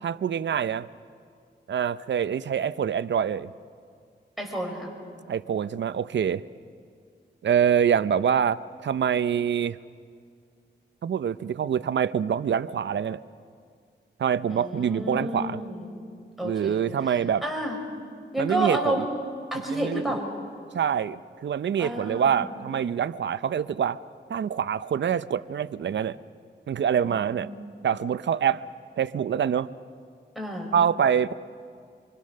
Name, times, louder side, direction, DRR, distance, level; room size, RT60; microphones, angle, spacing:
voice 1, 0.0-0.9 1.7-3.5 5.3-6.4 7.4-9.8 11.0-13.2 14.2-15.6 16.4-17.4 18.4-19.1 19.7-20.0 20.7-24.0 24.3-26.2 26.7-27.5 27.8-28.6 29.0-29.7 30.7-31.3, right 8 dB, 70° right, 15 dB, 0.6 m, -25 dB
voice 2, 4.4-4.9 14.5-15.9 16.4-16.8 17.4-17.8 18.3-19.0 19.5-20.2 21.8-22.5 27.0-27.8 30.4-30.7, right 1 dB, ahead, 0 dB, 5.8 m, -30 dB
26.0 x 25.0 x 6.6 m, 2.1 s
cardioid pair, 85°, 19 cm